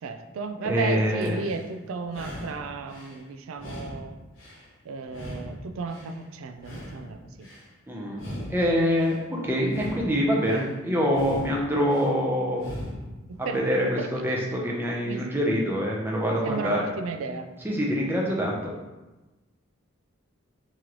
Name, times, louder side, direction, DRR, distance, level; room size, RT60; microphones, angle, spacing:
voice 1, 0.0-4.1 4.8-7.5 13.3-14.1 15.1-15.2 16.4-17.5, right 4 dB, 80° right, 7 dB, 0.4 m, -34 dB
voice 2, 0.6-1.4 7.9-8.2 8.5-9.1 9.4-12.7 13.5-16.8 17.6-18.7, equal, 10° right, -2 dB, 0.6 m, -25 dB
sound 1, 1.2-1.7 2.0-3.2 3.5-4.7 5.0-6.2 6.5-7.7 8.1-9.2 9.6-10.7 11.1-12.1 12.5-13.2, equal, 65° left, 1.1 m, -39 dB
3.1 x 2.9 x 3.7 m, 1.1 s
head